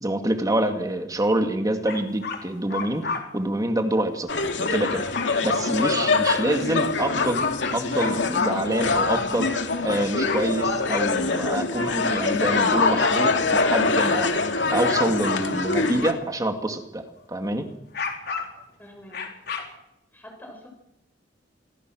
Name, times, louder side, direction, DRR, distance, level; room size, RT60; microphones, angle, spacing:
voice 1, 0.0-4.3 4.6-5.0 5.4-7.5 7.7-14.3 14.7-17.7, right 1 dB, 20° right, 6 dB, 2.2 m, -26 dB
sound 1, 1.9-3.2 4.3-5.3 6.4-6.5 6.8-6.9 7.3-8.4 9.0-9.7 9.9-11.7 12.1-12.8 13.3-13.5 14.4-14.9 15.4-15.5 17.8-18.6 19.1-19.6, left 5 dB, 60° left, 4.3 m, -32 dB
sound 2, 4.3-16.1, left 3 dB, 85° left, 2.6 m, -24 dB
voice 2, 18.8-19.3 20.1-20.7, left 1 dB, 10° left, 2 dB, 5.7 m, -47 dB
27.5 x 21.5 x 6.4 m, 0.84 s
head